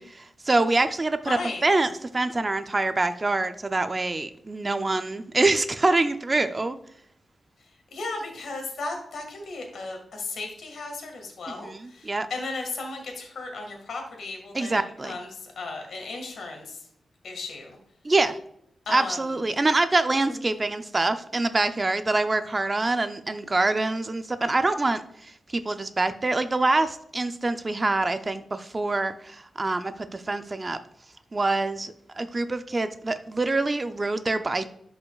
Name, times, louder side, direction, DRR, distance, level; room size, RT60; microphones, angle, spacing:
voice 1, 0.0-6.8 11.5-12.3 14.5-15.2 18.0-18.4 18.9-30.8 31.3-34.6, right 2 dB, 25° right, 10 dB, 0.4 m, -25 dB
voice 2, 1.2-1.6 7.9-15.3 15.5-16.8 17.2-17.8 18.8-19.4 20.3-20.4, left 3 dB, 75° left, 3 dB, 1.7 m, -35 dB
11.5 x 5.4 x 2.3 m, 0.72 s
wide cardioid pair, 110°, 0 cm